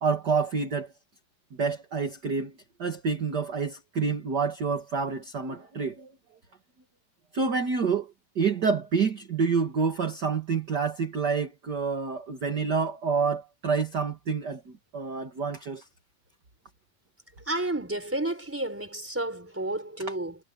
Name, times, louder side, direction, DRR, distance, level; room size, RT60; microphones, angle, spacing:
voice 1, 0.0-0.9 1.6-2.5 2.8-6.1 7.3-15.8, right 5 dB, 35° right, 1.8 m, -28 dB
voice 2, 17.5-20.4, right 1 dB, 5° right, 4.0 m, -31 dB
omnidirectional pair, 4.2 m